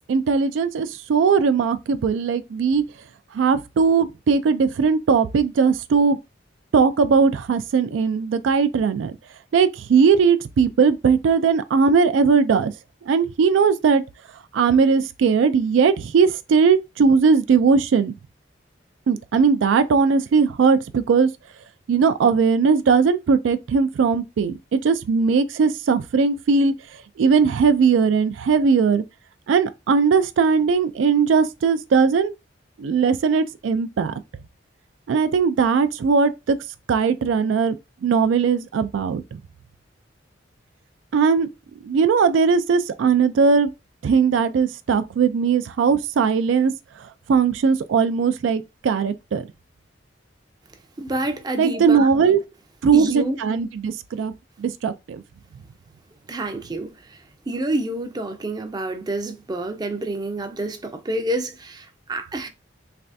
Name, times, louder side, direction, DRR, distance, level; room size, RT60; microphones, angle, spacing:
voice 1, 0.1-2.8 3.3-6.2 6.7-9.2 9.5-12.7 13.0-14.0 14.5-18.1 19.1-21.3 21.9-29.0 29.5-32.3 32.8-34.1 35.1-36.6 36.9-37.8 38.0-39.4 41.1-41.5 41.8-43.7 44.0-46.7 47.0-49.5 51.6-52.4 52.8-54.3 54.6-55.2, right 5 dB, 90° right, 0.3 m, -19 dB
voice 2, 51.0-52.1 52.9-53.4 56.3-57.2 57.5-62.5, right 1 dB, 20° right, 0.4 m, -28 dB
3.3 x 3.2 x 2.5 m
head